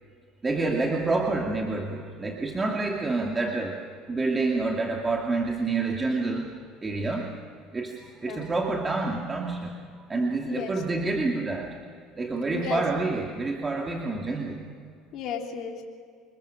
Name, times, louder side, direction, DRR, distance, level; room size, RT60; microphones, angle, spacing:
voice 1, 0.4-3.8 4.1-6.5 6.8-7.3 7.7-9.7 10.1-11.8 12.2-14.6, right 3 dB, 25° right, 1 dB, 2.4 m, -28 dB
voice 2, 10.4-10.8 12.5-12.8 15.1-15.8, left 7 dB, 60° left, 1 dB, 3.0 m, -34 dB
26.5 x 21.0 x 6.5 m, 2.2 s
supercardioid pair, 90°, 0 cm